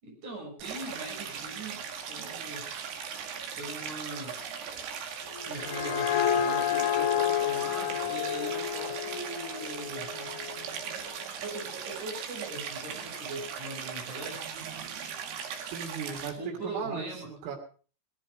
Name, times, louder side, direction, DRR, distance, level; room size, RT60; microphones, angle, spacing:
voice 1, 0.0-2.8 3.5-4.5 5.5-10.1 11.3-14.4 16.4-17.3, right 1 dB, 40° right, 0 dB, 8.1 m, -41 dB
Stream, 0.6-16.3, right 7 dB, 65° right, 4.2 m, -39 dB
sound 1, 5.3-10.8, left 10 dB, 70° left, 3.6 m, -30 dB
voice 2, 15.7-17.6, right 6 dB, 85° right, 1 dB, 5.4 m, -37 dB
18.5 x 14.0 x 5.1 m, 0.40 s
omnidirectional pair, 5.7 m